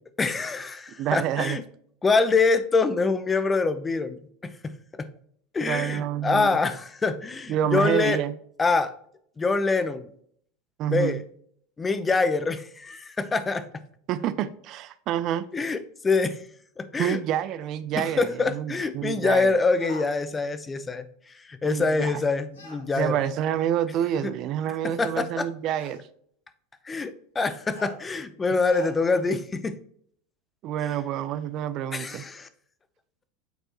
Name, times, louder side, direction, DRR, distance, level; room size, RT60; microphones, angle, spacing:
voice 1, 0.2-1.6 2.0-4.5 5.5-8.2 8.6-8.9 9.4-10.1 10.9-11.2 11.8-13.6 15.5-15.8 16.0-16.4 16.8-17.2 18.0-21.0 21.5-23.2 24.2-24.3 25.0-25.5 26.9-29.7 31.9-32.5, left 4 dB, 20° left, 0.7 m, -25 dB
voice 2, 1.0-1.6 5.7-6.6 7.5-8.3 10.8-11.2 14.1-15.5 17.0-19.5 21.6-22.2 22.9-26.1 30.6-32.3, right 10 dB, 50° right, 0.5 m, -28 dB
sound 1, 19.8-20.1 22.5-22.8 24.1-24.2 25.7-26.0 27.7-28.0 28.7-28.9, left 3 dB, 90° left, 2.3 m, -42 dB
7.9 x 4.4 x 2.9 m
hypercardioid pair, 95°, 0 cm